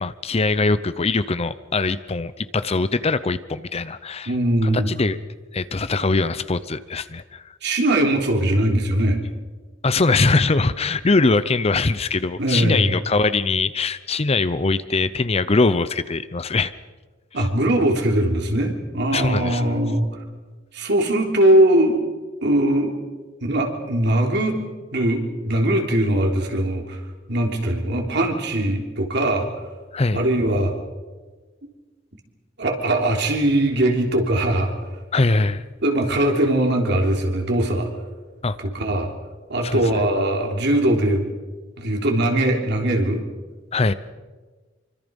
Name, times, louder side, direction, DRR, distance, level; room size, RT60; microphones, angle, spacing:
voice 1, 0.0-4.3 4.6-5.2 5.5-7.4 9.8-16.7 19.1-19.6 29.9-30.2 35.1-35.6 38.4-38.6 39.6-39.8 43.7-43.9, left 3 dB, 30° left, 14 dB, 0.7 m, -22 dB
voice 2, 4.3-4.9 7.6-9.2 12.4-12.9 17.3-20.2 20.7-22.0 22.4-23.0 23.4-24.6 24.9-27.0 27.3-29.5 30.1-30.7 32.6-34.7 35.8-37.9 38.6-39.1 39.5-41.2 41.8-43.3, right 1 dB, 60° right, 2 dB, 3.5 m, -20 dB
25.5 x 24.5 x 5.4 m, 1.3 s
head